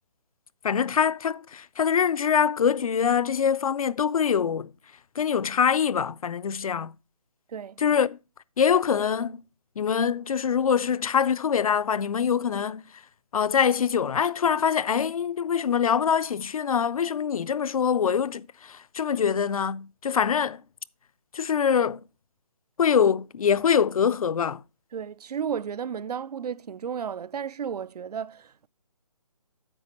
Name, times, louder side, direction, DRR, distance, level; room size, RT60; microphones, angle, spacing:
voice 1, 0.6-4.7 5.2-6.9 7.8-8.2 8.6-9.4 9.8-12.8 13.3-20.6 21.3-22.0 22.8-24.6, left 7 dB, 65° left, 0.4 m, -24 dB
voice 2, 24.9-28.7, right 7 dB, 90° right, 0.4 m, -33 dB
9.8 x 7.5 x 2.9 m
hypercardioid pair, 175°, 20 cm